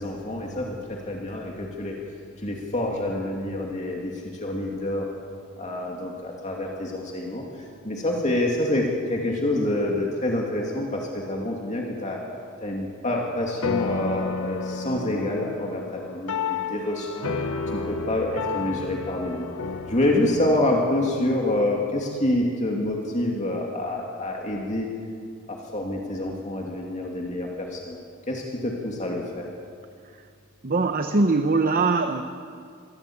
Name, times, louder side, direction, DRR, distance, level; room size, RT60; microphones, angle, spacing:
voice 1, 0.0-1.9 2.4-5.1 5.6-7.4 7.8-12.2 12.6-17.3 17.7-19.5 19.9-24.9 25.5-28.0 28.3-29.5, left 1 dB, 35° left, -1 dB, 2.5 m, -27 dB
sound 1, 13.6-22.3, left 5 dB, 80° left, 1.4 m, -32 dB
voice 2, 30.6-32.2, right 3 dB, 40° right, 7 dB, 0.9 m, -21 dB
23.5 x 16.5 x 8.7 m, 2.2 s
head